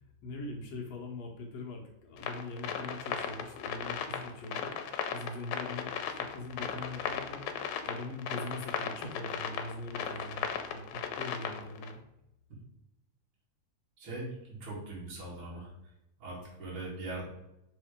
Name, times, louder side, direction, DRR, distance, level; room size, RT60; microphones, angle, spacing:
voice 1, 0.2-7.5 7.8-12.0, left 2 dB, 65° left, 0 dB, 2.0 m, -42 dB
sound 1, 2.2-11.9, left 8 dB, 85° left, 2.2 m, -36 dB
voice 2, 14.0-15.7 16.2-17.2, right 2 dB, 45° right, -5 dB, 3.1 m, -41 dB
6.2 x 4.1 x 5.1 m, 0.86 s
omnidirectional pair, 3.4 m